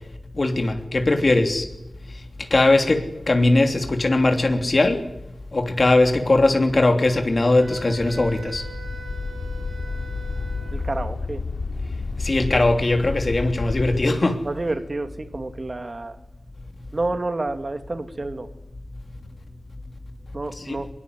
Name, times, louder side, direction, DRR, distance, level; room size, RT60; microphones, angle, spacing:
voice 1, 0.4-1.7 2.5-5.0 5.5-8.6 12.2-14.4 20.5-20.8, left 2 dB, 40° left, 5 dB, 3.2 m, -20 dB
Wind instrument woodwind instrument, 7.6-11.1, right 5 dB, 85° right, 6.4 m, -42 dB
sound 1, 7.9-14.0, left 4 dB, 80° left, 2.8 m, -31 dB
voice 2, 10.7-11.4 14.4-16.2 16.9-18.5 20.3-20.9, right 2 dB, 35° right, 8 dB, 2.5 m, -29 dB
24.0 x 22.5 x 9.7 m, 0.84 s
wide cardioid pair, 105°, 0 cm